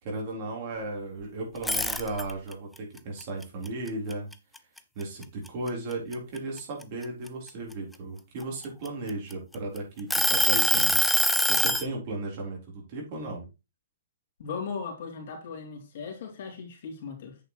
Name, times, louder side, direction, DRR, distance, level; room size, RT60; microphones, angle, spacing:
voice 1, 0.0-4.3 5.0-11.1 11.5-13.4, right 2 dB, 40° right, 4.1 m, -35 dB
sound 1, 1.6-2.5 3.0-4.8 5.2-5.5 5.9-7.7 8.4-9.6 10.1-11.9, left 1 dB, ahead, 0.5 m, -24 dB
voice 2, 14.4-17.4, left 5 dB, 55° left, 3.1 m, -37 dB
8.4 x 6.6 x 3.2 m
hypercardioid pair, 165°, 0 cm